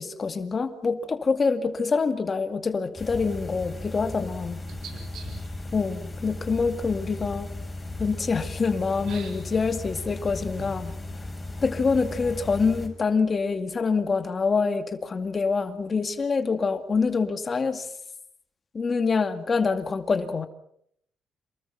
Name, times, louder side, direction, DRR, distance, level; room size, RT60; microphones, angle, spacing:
voice 1, 0.0-4.6 5.7-7.5 8.0-10.9 11.6-17.9 18.7-20.5, left 4 dB, 35° left, 8 dB, 2.2 m, -26 dB
sound 1, 3.0-12.9, left 2 dB, 20° left, 6.5 m, -36 dB
voice 2, 4.7-5.5 9.1-9.3 10.6-10.8, right 5 dB, 70° right, 3 dB, 4.3 m, -41 dB
28.0 x 21.0 x 5.9 m, 0.71 s
cardioid pair, 90°, 0 cm